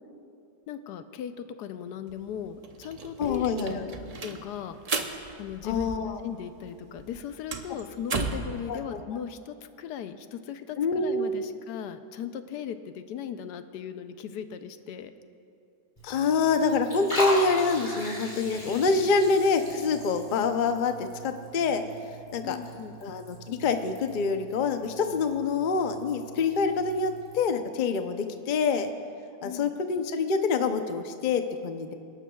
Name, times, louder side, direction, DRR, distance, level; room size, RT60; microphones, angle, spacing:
voice 1, 0.7-3.9 4.2-4.8 5.4-5.9 6.2-15.1 22.4-23.0 29.4-29.7, left 8 dB, 85° left, 10 dB, 1.2 m, -38 dB
sound 1, 2.1-2.2 2.4-6.4 6.6-8.6, right 4 dB, 55° right, 0.4 m, -35 dB
voice 2, 3.2-3.9 5.6-6.2 8.7-9.0 10.8-11.5 16.0-21.8 22.3-22.6 23.0-28.9 29.4-31.9, left 4 dB, 55° left, 7 dB, 0.5 m, -26 dB
Liquid, 16.0-27.4, equal, 20° left, 3.1 m, -39 dB
27.5 x 12.0 x 2.3 m, 2.5 s
omnidirectional pair, 1.7 m